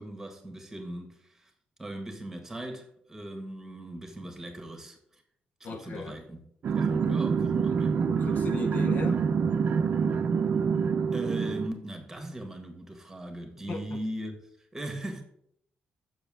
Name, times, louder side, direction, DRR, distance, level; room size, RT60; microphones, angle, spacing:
voice 1, 0.0-1.5 1.8-5.0 5.6-6.4 6.7-7.9 11.1-14.4 14.7-15.2, right 1 dB, 10° right, 1.6 m, -39 dB
voice 2, 5.6-6.2 6.9-7.2 7.6-7.7 8.1-9.2 13.7-14.0, left 4 dB, 55° left, 0.8 m, -37 dB
sound 1, 6.6-11.7, right 6 dB, 55° right, 0.6 m, -26 dB
6.9 x 6.3 x 3.7 m
cardioid pair, 110°, 3 cm